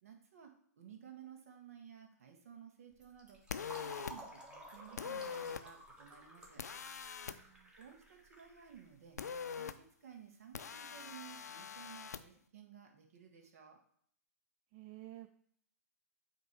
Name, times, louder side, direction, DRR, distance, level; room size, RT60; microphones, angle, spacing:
voice 1, 0.0-3.4 3.8-6.6 7.8-9.2 9.6-13.8, right 8 dB, 55° right, 2 dB, 1.5 m, -56 dB
Fill (with liquid), 2.9-9.3, equal, 10° right, 1.2 m, -54 dB
sound 1, 3.5-4.1 5.0-5.6 6.6-7.4 9.2-9.7 10.5-12.2, left 7 dB, 70° left, 0.5 m, -43 dB
voice 2, 7.2-7.7 14.7-15.3, right 16 dB, 35° right, 8 dB, 0.4 m, -52 dB
8.1 x 3.0 x 4.7 m, 0.64 s
figure-of-eight pair, 115°, 9 cm